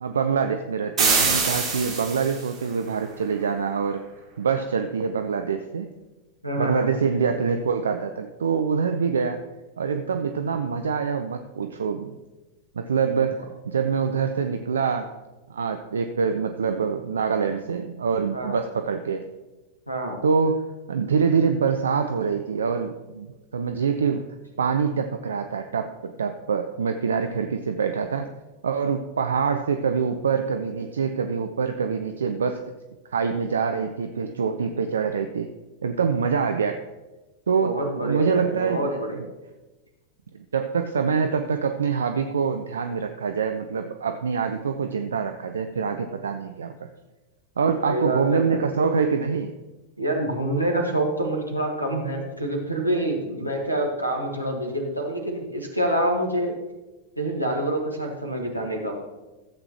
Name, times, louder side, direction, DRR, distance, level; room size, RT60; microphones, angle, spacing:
voice 1, 0.0-4.1 4.4-5.9 6.6-9.4 9.8-12.2 12.7-15.1 15.5-19.3 20.2-23.3 23.5-24.2 24.6-28.3 28.6-32.6 33.1-35.5 35.8-36.8 37.5-39.0 40.5-46.9 47.6-49.5 53.4-53.5, right 6 dB, 70° right, 7 dB, 0.5 m, -25 dB
sound 1, 1.0-2.5, right 4 dB, 25° right, 3.4 m, -23 dB
voice 2, 6.4-6.9 18.3-18.6 19.9-20.2 37.6-39.2 47.8-48.6 50.0-56.5 57.2-58.9, right 1 dB, 90° right, 0 dB, 1.6 m, -26 dB
14.5 x 7.9 x 3.0 m, 1.1 s
figure-of-eight pair, 90°, 0 cm